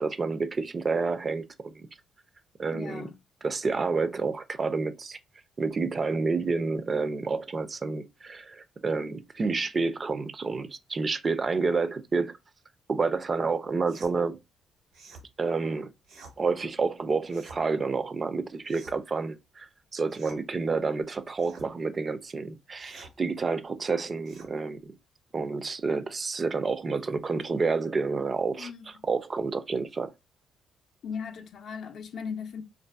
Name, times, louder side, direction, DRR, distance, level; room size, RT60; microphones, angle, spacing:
voice 1, 0.0-1.9 2.6-3.1 3.4-5.2 5.6-12.3 12.9-14.4 15.4-15.9 16.4-25.0 25.3-28.7 29.1-30.1, right 4 dB, 35° right, 0.3 m, -29 dB
voice 2, 2.7-3.2 28.6-28.9 31.0-32.6, left 6 dB, 65° left, 0.4 m, -37 dB
sound 1, 13.9-14.1 14.9-15.3 16.0-16.4 17.3-17.6 18.6-19.1 20.1-20.4 21.4-21.7 22.8-23.1 24.2-24.5, right 3 dB, 90° right, 1.2 m, -49 dB
2.5 x 2.5 x 2.3 m
cardioid pair, 90°, 0 cm